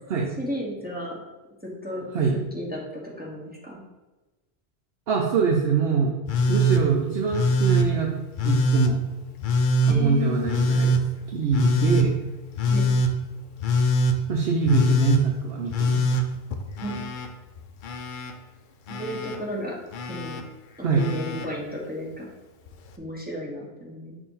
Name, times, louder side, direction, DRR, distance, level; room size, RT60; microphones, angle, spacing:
voice 1, 0.4-1.2 1.6-2.1 2.5-3.8 9.9-10.6 12.7-12.9 16.8-17.0 18.9-19.8 20.1-20.4 20.8-22.3 23.0-24.2, right 1 dB, 10° right, -3 dB, 1.1 m, -33 dB
voice 2, 5.1-6.2 6.5-8.1 8.4-9.0 9.8-11.0 11.3-12.1 14.3-16.1 20.8-21.1, right 4 dB, 70° right, 0 dB, 1.0 m, -24 dB
Telephone, 6.3-6.8 7.3-7.9 8.4-8.9 9.4-10.0 10.5-11.0 11.5-12.1 12.6-13.1 13.6-14.2 14.7-15.2 15.7-17.3 17.6-18.3 18.9-19.4 19.9-20.4 21.0-21.5 22.7-22.8, equal, 55° left, 0.7 m, -23 dB
6.7 x 2.8 x 5.5 m, 1.1 s
omnidirectional pair, 1.1 m